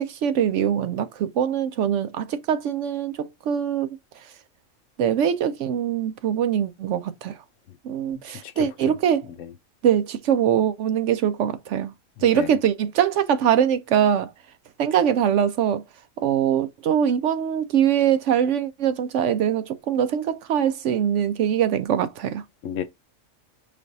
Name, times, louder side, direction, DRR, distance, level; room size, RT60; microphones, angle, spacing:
voice 1, 0.0-4.0 4.2-4.3 5.0-7.4 7.8-9.3 9.8-11.9 12.2-14.3 14.8-15.8 16.2-22.4, right 9 dB, 70° right, 0.8 m, -23 dB
voice 2, 8.4-8.9 9.4-9.5 12.2-12.5 22.6-22.8, left 9 dB, 70° left, 1.0 m, -33 dB
5.1 x 3.3 x 2.7 m
omnidirectional pair, 1.4 m